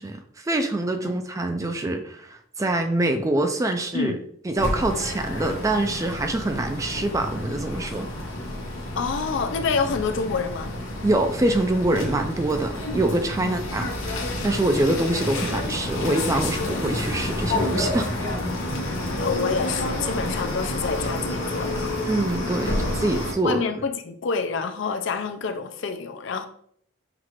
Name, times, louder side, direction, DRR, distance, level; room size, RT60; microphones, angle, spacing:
voice 1, 0.0-4.1 4.5-8.1 11.0-18.1 22.1-23.6, right 1 dB, 15° right, 0.3 m, -25 dB
sound 1, 4.6-23.3, left 1 dB, 90° left, 1.0 m, -29 dB
voice 2, 9.0-10.7 13.4-13.6 19.2-21.9 23.4-26.5, left 5 dB, 60° left, 0.5 m, -27 dB
5.8 x 2.4 x 3.0 m
head